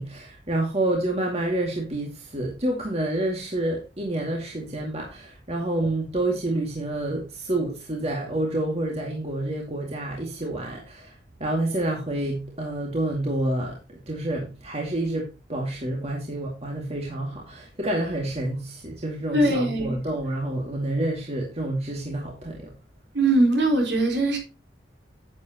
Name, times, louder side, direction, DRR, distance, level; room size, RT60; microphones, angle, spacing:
voice 1, 0.0-22.7, right 1 dB, 35° right, 2.3 m, -28 dB
voice 2, 19.3-20.0 23.1-24.4, right 2 dB, 60° right, 4.0 m, -21 dB
10.5 x 8.6 x 2.9 m
head